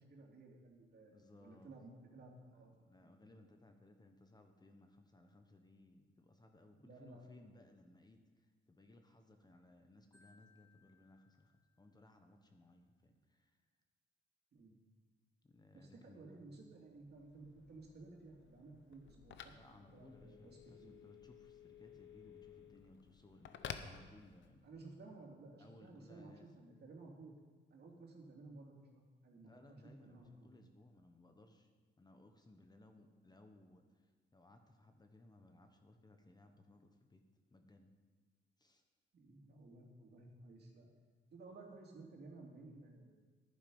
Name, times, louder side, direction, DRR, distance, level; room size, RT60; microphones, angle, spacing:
voice 1, 0.1-2.7 3.0-3.2 6.8-7.3 14.5-14.7 15.7-20.9 24.6-27.3 27.7-29.5 30.0-30.5 39.1-40.9 41.3-43.2, right 3 dB, 55° right, 0 dB, 2.7 m, -56 dB
voice 2, 1.1-1.7 2.5-13.6 15.4-16.5 19.5-24.7 25.6-26.5 29.4-31.7 32.0-37.2 37.5-37.9 38.6-38.8, left 2 dB, 20° left, 5 dB, 1.1 m, -63 dB
Marimba xylophone, 10.1-12.2, left 3 dB, 5° right, 3.9 m, -72 dB
Telephone, 16.9-24.8, left 8 dB, 70° left, 0.8 m, -54 dB
11.0 x 9.6 x 5.5 m, 1.4 s
cardioid pair, 90°, 20 cm